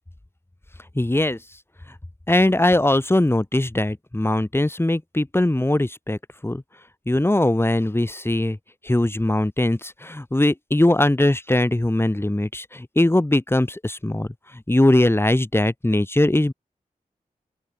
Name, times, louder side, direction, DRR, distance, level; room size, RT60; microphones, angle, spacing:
voice 1, 0.9-1.4 2.3-6.6 7.1-8.6 8.8-14.3 14.5-16.5, left 1 dB, 15° left, 2.6 m, -20 dB
open air
cardioid pair, 65°, 15 cm